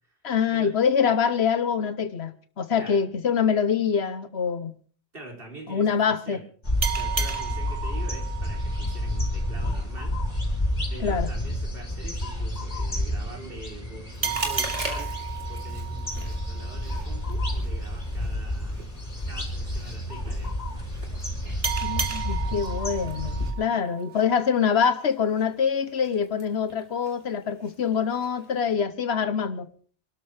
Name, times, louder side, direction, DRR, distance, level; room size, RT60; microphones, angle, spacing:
voice 1, 0.2-4.7 5.7-6.4 11.0-11.3 21.8-29.7, left 7 dB, 70° left, 1.2 m, -25 dB
voice 2, 5.1-6.4 6.9-10.2 10.9-15.1 15.4-18.9 19.3-20.6 23.6-23.9, right 2 dB, 55° right, 4.1 m, -44 dB
sound 1, 6.6-23.5, left 1 dB, 35° left, 4.1 m, -30 dB
sound 2, 6.8-10.0 14.2-17.5 21.6-24.6, right 6 dB, 30° right, 1.3 m, -34 dB
Chewing mastication, 14.1-28.7, right 1 dB, 90° right, 3.1 m, -43 dB
26.5 x 12.5 x 3.4 m
omnidirectional pair, 1.1 m